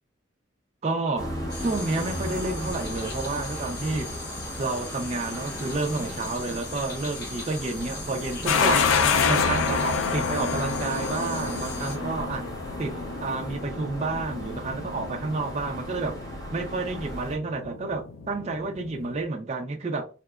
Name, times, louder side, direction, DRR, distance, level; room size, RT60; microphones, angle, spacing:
voice 1, 0.8-1.3 1.6-4.1 4.6-8.9 9.3-12.4 12.8-16.2 16.5-20.1, right 3 dB, 35° right, 0.3 m, -30 dB
sound 1, 1.2-17.4, equal, 15° left, 0.6 m, -37 dB
sound 2, 1.5-12.0, left 3 dB, 50° left, 0.8 m, -39 dB
sound 3, 8.5-19.2, left 5 dB, 90° left, 0.4 m, -28 dB
2.8 x 2.2 x 2.2 m
head